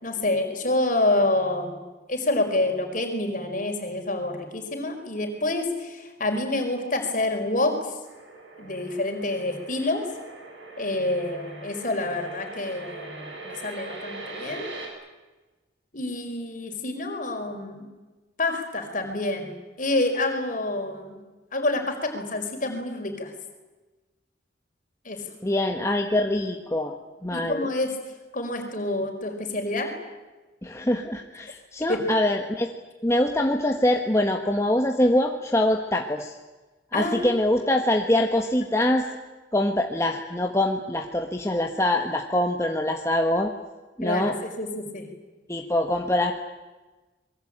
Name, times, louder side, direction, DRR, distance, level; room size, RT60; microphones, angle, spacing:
voice 1, 0.0-1.8 2.1-7.9 8.6-10.0 10.8-14.7 15.9-17.9 18.4-21.2 21.5-23.3 25.0-25.2 27.3-27.9 28.3-29.9 31.9-32.1 36.9-37.6 38.7-38.8 44.0-45.1, left 2 dB, 45° left, 4 dB, 5.0 m, -27 dB
sound 1, 8.0-14.9, right 3 dB, 75° right, 7.7 m, -41 dB
voice 2, 25.4-27.0 27.2-27.7 30.6-32.7 33.0-36.4 36.9-39.1 39.5-43.5 44.0-44.3 45.5-46.3, left 1 dB, 15° left, 3 dB, 1.4 m, -24 dB
26.5 x 22.5 x 8.9 m, 1.2 s
head